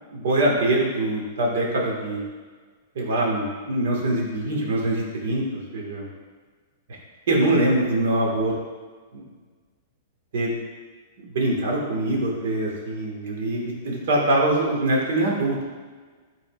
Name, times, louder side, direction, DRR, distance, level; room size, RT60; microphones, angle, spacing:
voice 1, 0.1-2.2 3.0-6.1 7.3-8.5 9.1-9.2 10.3-10.6 11.2-15.6, right 1 dB, 70° right, -2 dB, 1.7 m, -23 dB
10.5 x 4.0 x 2.5 m, 1.5 s
hypercardioid pair, 130°, 0 cm